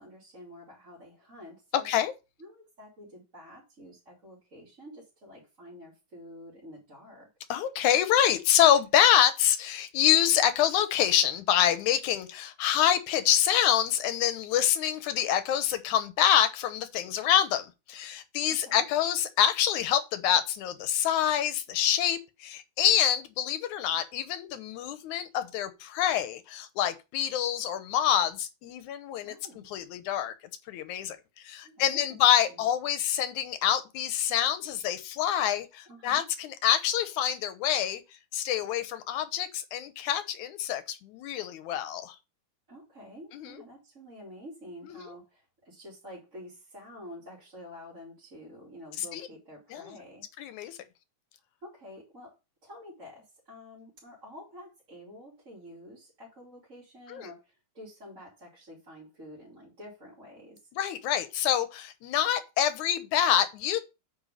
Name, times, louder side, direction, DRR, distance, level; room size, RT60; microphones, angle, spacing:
voice 1, 0.0-1.9 2.4-7.3 18.5-18.8 29.2-29.7 31.6-32.7 35.9-36.2 42.7-50.2 51.6-52.4 52.6-60.6, left 1 dB, 25° right, 3.2 m, -48 dB
voice 2, 7.5-29.3 29.7-30.3 30.7-31.2 31.4-38.0 38.3-42.2 43.3-43.5 44.9-45.1 49.0-49.2 49.7-50.0 50.4-50.8 57.1-57.3 60.7-63.8, left 10 dB, 85° left, 2.4 m, -26 dB
9.1 x 4.6 x 5.0 m
omnidirectional pair, 3.4 m